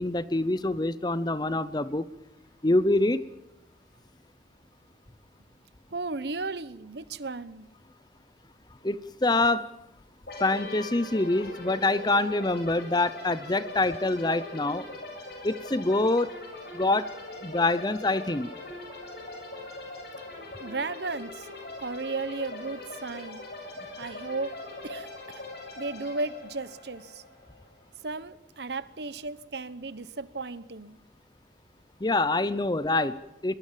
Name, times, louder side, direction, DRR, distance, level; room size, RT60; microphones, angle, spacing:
voice 1, 0.0-2.0 2.6-3.2 8.8-9.7 10.4-14.8 15.4-16.3 16.7-17.1 17.4-18.5 32.0-33.5, left 2 dB, 25° left, 15 dB, 0.8 m, -25 dB
voice 2, 5.9-7.7 20.6-21.5 21.8-23.4 23.9-24.5 24.8-25.4 25.8-27.2 28.0-31.0, right 3 dB, 65° right, 15 dB, 1.0 m, -35 dB
sound 1, 10.3-27.9, left 2 dB, 60° left, 7.4 m, -41 dB
22.5 x 21.5 x 7.5 m, 0.88 s
head